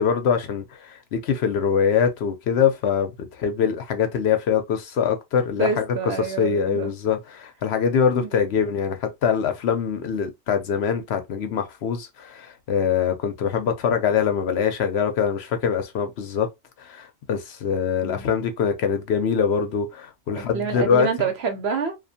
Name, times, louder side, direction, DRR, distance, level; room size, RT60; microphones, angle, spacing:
voice 1, 0.0-5.9 6.2-16.5 16.8-21.1, left 7 dB, 60° left, 0.8 m, -23 dB
voice 2, 5.6-6.9 8.1-8.5 18.0-18.3 20.4-22.0, right 6 dB, 60° right, 0.9 m, -27 dB
2.5 x 2.5 x 2.6 m
omnidirectional pair, 1.3 m